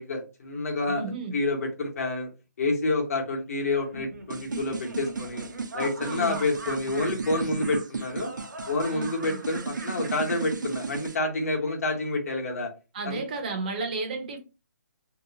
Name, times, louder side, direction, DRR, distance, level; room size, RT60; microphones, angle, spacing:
voice 1, 0.0-1.0 1.3-2.3 2.6-5.5 5.7-8.3 8.7-12.7 13.0-13.2, left 2 dB, 50° left, 1.1 m, -28 dB
voice 2, 0.9-1.4 6.0-6.4 8.9-9.4 12.9-14.4, right 3 dB, 30° right, 0.6 m, -33 dB
Laughter, 3.7-11.2, right 2 dB, 65° right, 0.9 m, -41 dB
sound 1, 4.3-11.1, right 4 dB, 85° right, 0.5 m, -35 dB
2.8 x 2.2 x 2.7 m
hypercardioid pair, 165°, 10 cm